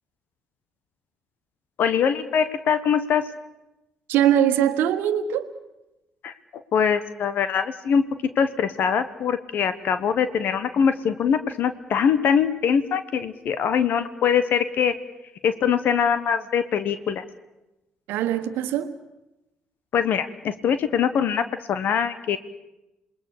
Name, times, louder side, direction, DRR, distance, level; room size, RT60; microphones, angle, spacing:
voice 1, 1.8-3.2 6.2-8.0 8.4-14.9 15.4-17.2 19.9-22.4, left 7 dB, 60° left, 12 dB, 1.3 m, -23 dB
voice 2, 4.1-5.5 18.1-18.9, right 10 dB, 70° right, 10 dB, 1.4 m, -22 dB
27.5 x 20.0 x 6.8 m, 0.98 s
hypercardioid pair, 45°, 4 cm